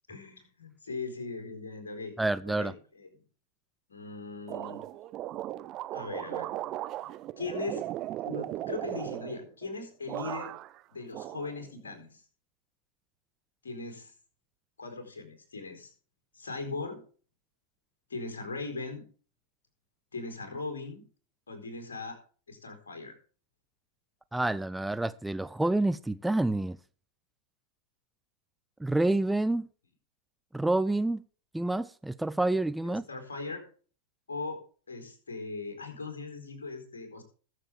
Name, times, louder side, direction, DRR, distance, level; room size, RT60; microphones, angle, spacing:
voice 1, 0.1-2.2 2.4-3.1 3.9-4.8 5.9-6.5 7.4-7.8 8.3-10.6 10.9-12.2 13.6-14.1 14.8-15.9 16.3-17.0 18.1-19.1 20.1-21.0 21.5-22.2 22.5-23.2 32.9-33.6 34.3-34.6 34.9-37.2, left 3 dB, 70° left, 4.3 m, -39 dB
voice 2, 2.2-2.7 24.3-26.8 28.8-29.7 30.5-31.2 31.5-33.0, right 2 dB, 5° right, 0.5 m, -28 dB
sound 1, 4.5-9.8 10.1-10.8 11.1-12.0, right 14 dB, 35° right, 0.8 m, -37 dB
21.0 x 7.6 x 3.5 m
figure-of-eight pair, 90°, 0 cm